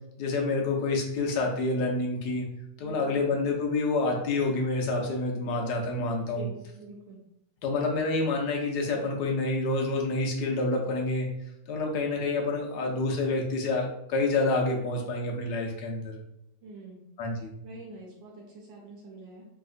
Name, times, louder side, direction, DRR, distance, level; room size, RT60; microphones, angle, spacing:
voice 1, 0.2-2.5 2.8-6.4 7.6-11.3 11.7-16.1 17.2-17.6, left 3 dB, 70° left, 0 dB, 1.0 m, -28 dB
voice 2, 2.8-3.2 6.3-7.2 16.6-17.0 17.6-19.5, right 3 dB, 75° right, -2 dB, 1.3 m, -45 dB
3.2 x 2.7 x 2.5 m, 0.82 s
omnidirectional pair, 2.2 m